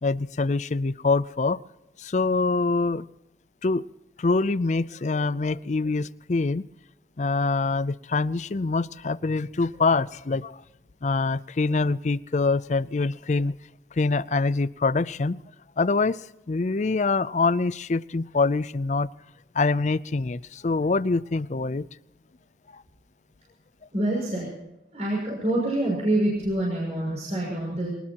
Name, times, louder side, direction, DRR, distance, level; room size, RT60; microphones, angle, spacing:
voice 1, 0.0-1.6 2.0-3.1 3.6-3.9 4.2-6.6 7.2-10.6 11.0-13.5 14.0-15.4 15.8-16.2 16.5-19.1 19.5-21.8, left 3 dB, 40° left, 18 dB, 0.5 m, -25 dB
voice 2, 23.9-24.5 24.9-27.9, right 1 dB, 40° right, -4 dB, 6.2 m, -26 dB
24.0 x 19.5 x 2.9 m, 0.92 s
head